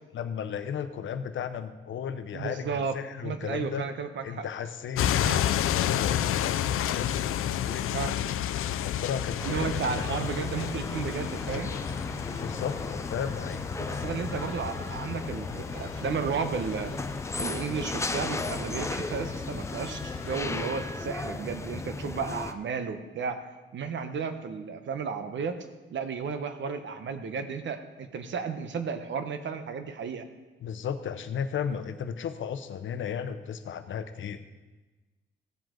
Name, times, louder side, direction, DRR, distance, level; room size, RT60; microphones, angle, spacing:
voice 1, 0.1-2.7 2.9-3.8 4.2-8.2 8.8-10.1 12.4-14.1 30.6-34.4, left 7 dB, 65° left, 10 dB, 0.8 m, -35 dB
voice 2, 2.3-2.9 3.2-4.5 5.2-5.4 7.9-8.2 9.4-11.7 13.8-16.9 17.4-23.4 23.7-25.6 25.9-30.3, right 5 dB, 65° right, 8 dB, 1.0 m, -33 dB
sound 1, 5.0-20.7, left 11 dB, 85° left, 0.5 m, -32 dB
sound 2, 9.4-22.5, left 3 dB, 15° left, 0.5 m, -35 dB
16.0 x 7.7 x 3.8 m, 1.2 s
wide cardioid pair, 140°, 21 cm